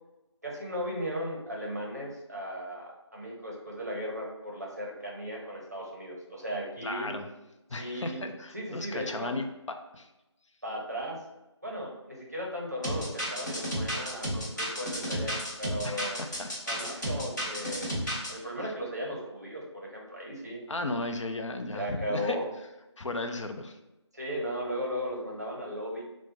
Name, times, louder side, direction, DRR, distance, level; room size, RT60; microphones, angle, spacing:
voice 1, 0.4-7.1 7.8-8.2 8.5-9.4 10.6-11.2 11.6-16.2 16.7-20.6 21.7-22.4 24.1-26.1, equal, 35° right, -2 dB, 0.6 m, -36 dB
voice 2, 6.8-7.3 7.7-9.4 9.9-10.1 15.8-16.9 20.7-22.4 23.0-23.8, left 2 dB, 85° left, 6 dB, 0.5 m, -35 dB
sound 1, 12.8-18.3, equal, 40° left, 0.9 m, -32 dB
3.4 x 2.0 x 3.0 m, 0.97 s
figure-of-eight pair, 175°, 15 cm